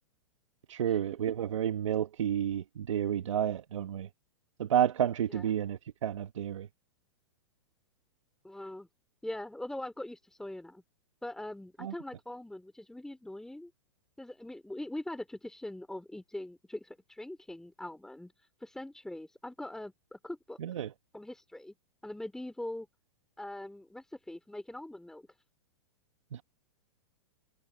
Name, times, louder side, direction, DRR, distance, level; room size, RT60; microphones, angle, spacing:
voice 1, 0.7-4.1 4.6-6.7 11.8-11.9 20.6-20.9 26.3-26.4, right 10 dB, 75° right, 1.3 m, -30 dB
voice 2, 8.4-8.9 9.2-10.8 11.2-13.7 14.2-18.3 18.6-20.6 21.1-21.7 22.0-22.9 23.4-25.3, left 1 dB, 5° left, 2.9 m, -42 dB
hypercardioid pair, 115°, 16 cm